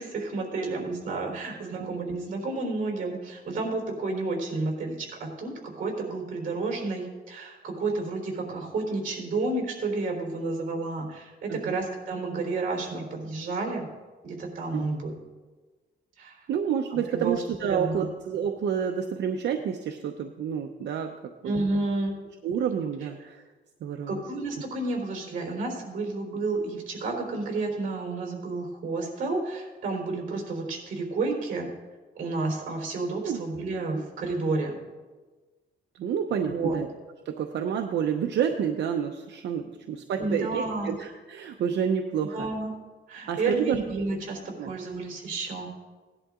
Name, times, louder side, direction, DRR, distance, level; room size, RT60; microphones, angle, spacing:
voice 1, 0.0-13.8 14.2-15.1 16.2-16.4 16.9-17.4 17.7-18.1 21.4-22.2 24.1-31.7 32.2-34.7 36.4-36.8 40.2-41.0 42.3-42.7 43.1-45.7, right 3 dB, 45° right, 2 dB, 3.7 m, -31 dB
voice 2, 16.5-21.2 21.4-21.5 22.4-23.4 23.8-24.2 33.2-33.4 36.0-36.9 37.3-42.5 43.3-43.8 44.6-44.7, right 8 dB, 70° right, 4 dB, 0.8 m, -29 dB
17.5 x 11.0 x 3.7 m, 1.3 s
wide cardioid pair, 175°, 19 cm